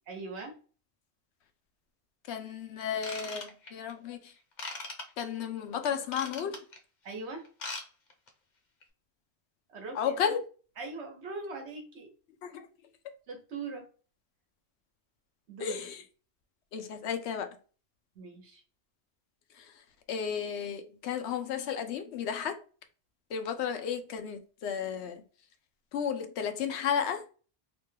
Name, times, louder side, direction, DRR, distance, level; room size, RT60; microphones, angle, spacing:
voice 1, 0.1-0.6 7.0-7.4 9.7-10.0 10.8-12.1 13.3-13.9 15.5-15.8 18.1-18.6, right 3 dB, 90° right, 1.2 m, -40 dB
voice 2, 2.3-4.3 5.2-6.6 9.9-10.4 12.4-12.7 15.6-16.0 16.7-17.5 19.5-19.8 20.1-22.6 23.3-25.2 25.9-27.2, left 7 dB, 90° left, 0.9 m, -33 dB
Ratchet pawl / Tools, 3.0-3.9 4.6-5.0 5.8-6.8 7.4-7.8 8.1-8.3 8.8-8.9, left 3 dB, 50° left, 0.7 m, -39 dB
3.0 x 2.2 x 3.1 m
omnidirectional pair, 1.1 m